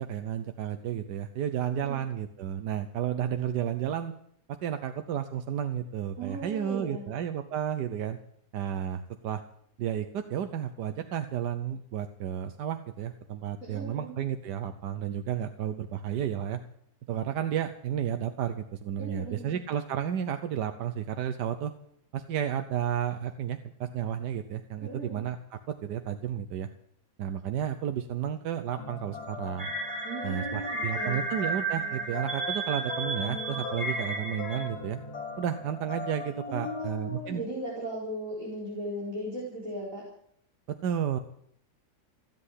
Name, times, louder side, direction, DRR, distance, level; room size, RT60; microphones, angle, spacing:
voice 1, 0.0-4.1 4.6-8.2 8.5-9.4 9.8-16.6 17.1-21.7 22.1-26.7 27.2-29.7 30.2-35.0 35.4-37.4 40.7-41.2, right 9 dB, 90° right, 8 dB, 1.4 m, -32 dB
voice 2, 1.7-2.0 6.2-7.1 13.6-14.1 19.0-19.6 24.8-25.2 30.0-31.2 36.5-40.0, right 1 dB, 55° right, -6 dB, 5.0 m, -37 dB
sound 1, 28.8-36.9, left 4 dB, 70° left, 2.1 m, -40 dB
sound 2, 29.6-34.7, right 3 dB, 20° right, 2.4 m, -33 dB
16.5 x 7.8 x 9.9 m, 0.70 s
omnidirectional pair, 1.7 m